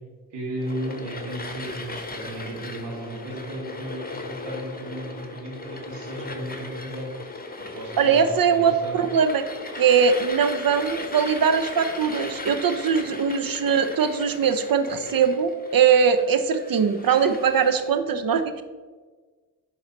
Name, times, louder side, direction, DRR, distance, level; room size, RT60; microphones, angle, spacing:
voice 1, 0.3-7.1 7.7-9.0 13.0-13.1, right 1 dB, 80° right, -1 dB, 2.2 m, -35 dB
sound 1, 0.6-17.9, left 3 dB, 20° left, 1.3 m, -37 dB
voice 2, 8.0-9.4 9.7-18.6, right 6 dB, 55° right, 10 dB, 0.8 m, -21 dB
10.5 x 4.2 x 4.1 m, 1.4 s
supercardioid pair, 40°, 41 cm